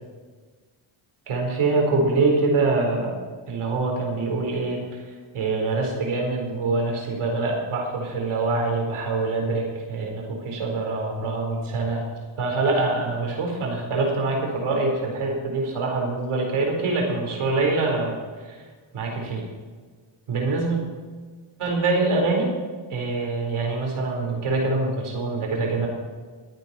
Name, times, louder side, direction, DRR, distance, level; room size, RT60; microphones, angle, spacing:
voice 1, 1.3-3.2 3.5-5.0 5.3-12.1 12.4-18.5 18.9-19.4 20.3-20.8 21.6-22.5 22.9-25.9, right 3 dB, 75° right, 0 dB, 4.3 m, -24 dB
23.0 x 10.0 x 4.3 m, 1.5 s
cardioid pair, 105°, 50 cm